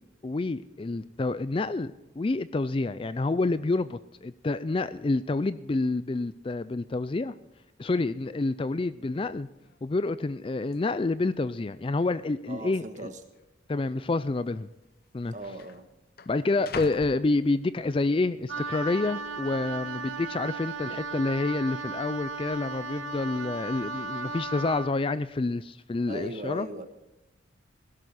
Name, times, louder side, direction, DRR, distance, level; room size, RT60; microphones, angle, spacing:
voice 1, 0.2-7.3 7.8-9.5 9.8-13.1 13.7-14.7 15.1-15.3 16.3-26.7, left 3 dB, 25° left, 15 dB, 0.3 m, -28 dB
sound 1, 9.6-10.0 10.7-10.8 11.6-12.1 12.4-12.5 13.3-13.5 14.5-14.6 14.8-18.0 18.5-19.0, left 5 dB, 50° left, 0.7 m, -44 dB
voice 2, 12.5-13.2 15.3-15.8 26.1-26.8, right 2 dB, 40° right, 7 dB, 1.4 m, -38 dB
Wind instrument woodwind instrument, 18.5-24.9, right 3 dB, 85° right, 1.0 m, -36 dB
16.5 x 12.5 x 4.2 m, 0.94 s
head